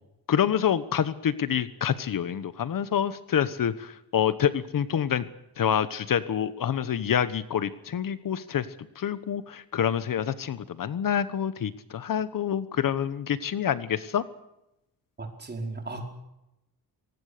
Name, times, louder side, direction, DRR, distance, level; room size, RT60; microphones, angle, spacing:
voice 1, 0.3-5.2 5.6-8.7 9.0-14.2, left 9 dB, 60° left, 14 dB, 1.2 m, -27 dB
voice 2, 15.2-16.0, right 3 dB, 25° right, 3 dB, 5.1 m, -35 dB
24.0 x 19.0 x 6.8 m, 0.88 s
cardioid pair, 125°, 37 cm